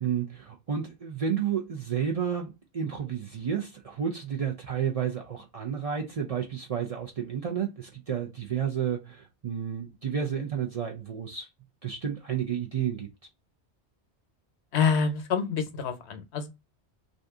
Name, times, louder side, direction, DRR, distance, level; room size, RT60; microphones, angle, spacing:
voice 1, 0.0-11.5 11.8-13.1, right 8 dB, 45° right, 0.5 m, -31 dB
voice 2, 14.7-16.5, left 6 dB, 80° left, 1.0 m, -27 dB
2.6 x 2.4 x 3.4 m
omnidirectional pair, 1.1 m